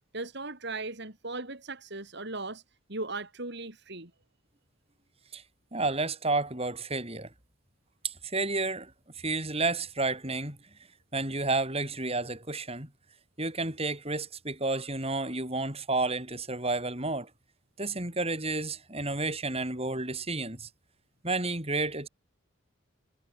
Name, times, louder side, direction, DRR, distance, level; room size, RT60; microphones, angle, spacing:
voice 1, 0.1-2.6 2.9-4.1, right 3 dB, 55° right, 4.5 m, -37 dB
voice 2, 5.7-7.3 8.0-10.6 11.1-12.9 13.4-17.3 17.8-20.7 21.2-22.1, right 3 dB, 30° right, 6.2 m, -31 dB
head